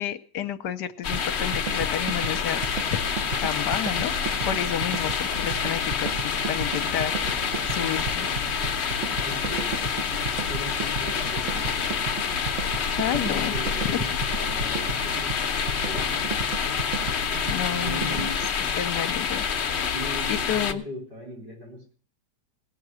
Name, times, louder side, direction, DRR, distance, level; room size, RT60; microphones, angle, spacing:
voice 1, 0.0-2.6 2.9-3.1 3.4-4.1 4.5-7.1 7.7-8.3 13.0-13.5 17.5-18.3 18.8-19.4 20.3-20.8, left 10 dB, 70° left, 11 dB, 1.3 m, -30 dB
sound 1, 1.0-20.7, left 6 dB, 50° left, 0.9 m, -27 dB
sound 2, 1.1-18.6, right 4 dB, 50° right, 1.1 m, -35 dB
voice 2, 9.2-9.7 10.5-11.9 13.1-16.4 17.8-18.4 19.9-22.0, equal, 70° right, 0 dB, 5.1 m, -39 dB
17.5 x 5.9 x 7.5 m, 0.43 s
omnidirectional pair, 1.9 m